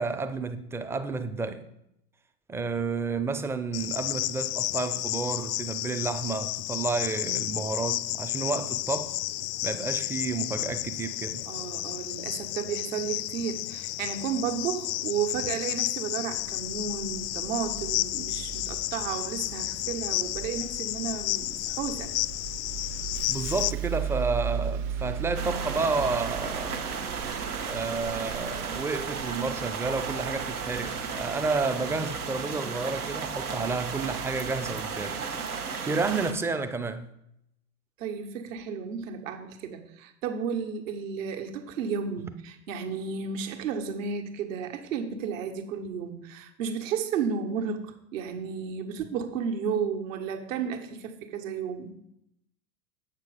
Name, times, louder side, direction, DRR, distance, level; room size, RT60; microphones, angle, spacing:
voice 1, 0.0-1.7 2.5-9.2 9.6-11.5 23.3-26.9 27.6-37.1, right 4 dB, 5° right, 0.5 m, -31 dB
Cricket, 3.7-23.7, left 17 dB, 55° left, 0.5 m, -32 dB
voice 2, 11.5-22.1 38.0-51.9, right 6 dB, 60° right, 1.5 m, -33 dB
Bus, 16.4-31.7, right 9 dB, 45° right, 1.1 m, -38 dB
sound 1, 25.4-36.3, right 5 dB, 90° right, 1.4 m, -34 dB
8.1 x 6.7 x 5.0 m
hypercardioid pair, 90°, 44 cm